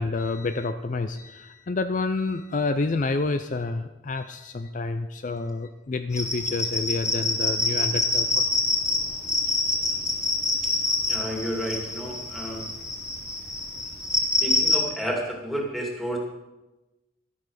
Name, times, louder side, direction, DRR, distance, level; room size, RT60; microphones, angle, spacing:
voice 1, 0.0-8.3, left 3 dB, 45° left, 9 dB, 0.5 m, -28 dB
sound 1, 6.1-14.8, left 2 dB, 15° left, 2.7 m, -26 dB
voice 2, 11.1-12.6 14.4-16.2, equal, ahead, -1 dB, 2.3 m, -31 dB
12.0 x 8.6 x 6.4 m, 1.0 s
head